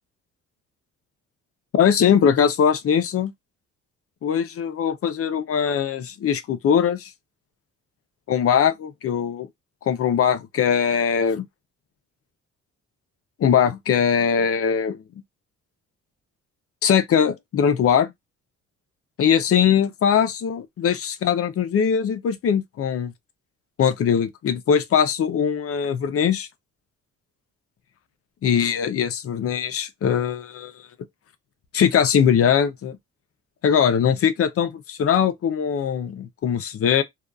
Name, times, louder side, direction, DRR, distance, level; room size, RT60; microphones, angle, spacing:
voice 1, 1.7-3.3 4.2-7.1 8.3-9.5 9.9-11.5 13.4-15.0 16.8-18.1 19.2-23.1 23.8-26.5 28.4-30.7 31.7-33.0 33.6-37.0, left 8 dB, 50° left, 0.6 m, -21 dB
2.6 x 2.3 x 2.3 m
cardioid pair, 90°, 30 cm